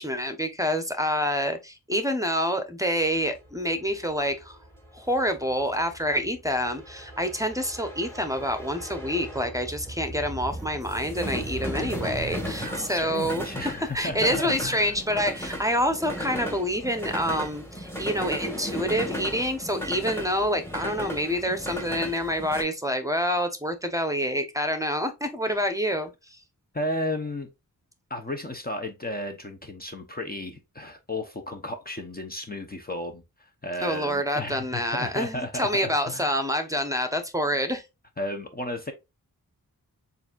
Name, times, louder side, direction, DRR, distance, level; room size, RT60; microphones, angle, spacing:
voice 1, 0.0-4.6 4.9-26.4 33.8-37.8, equal, 10° right, 0.9 m, -27 dB
sound 1, 3.1-22.6, equal, 5° left, 2.0 m, -36 dB
voice 2, 12.6-14.9 25.5-25.6 25.9-26.0 26.7-27.5 28.1-36.4 38.2-38.9, left 1 dB, 25° left, 0.8 m, -34 dB
6.9 x 2.7 x 2.4 m
wide cardioid pair, 60°, 36 cm